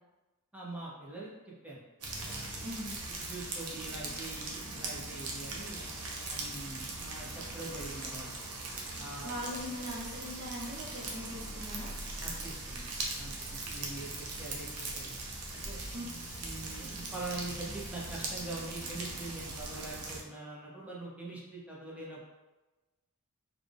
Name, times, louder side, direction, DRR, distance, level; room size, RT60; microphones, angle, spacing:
voice 1, 0.5-1.8 2.2-2.5 3.1-5.9 6.3-8.3 9.0-9.3 12.2-12.9 13.2-15.1 15.5-15.8 16.4-22.3, right 2 dB, 5° right, -5 dB, 0.7 m, -43 dB
sound 1, 2.0-20.2, right 2 dB, 90° right, 0.7 m, -40 dB
voice 2, 9.2-11.9 15.9-16.0, equal, 45° right, -7 dB, 1.2 m, -40 dB
sound 2, 12.2-19.9, left 1 dB, 25° left, 0.4 m, -52 dB
4.2 x 2.4 x 3.3 m, 1.1 s
head